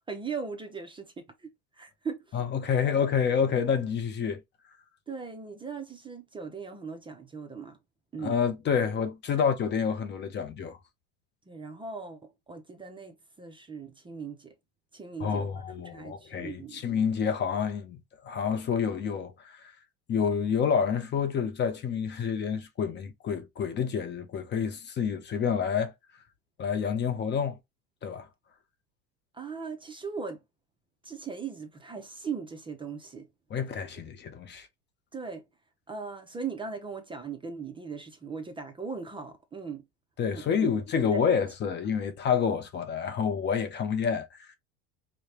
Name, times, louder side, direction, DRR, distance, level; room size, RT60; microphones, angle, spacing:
voice 1, 0.1-2.4 2.9-3.0 5.1-7.8 8.1-8.3 11.5-14.5 14.9-15.5 15.8-16.9 29.3-30.4 31.0-33.3 35.1-35.5 35.9-39.8 40.3-40.7 41.1-41.2, right 5 dB, 15° right, 0.6 m, -39 dB
voice 2, 2.3-4.4 8.2-10.8 15.2-19.7 20.1-25.9 26.6-27.6 28.0-28.3 33.5-34.7 40.2-44.6, left 7 dB, 30° left, 0.7 m, -28 dB
4.9 x 2.2 x 2.9 m
supercardioid pair, 125°, 36 cm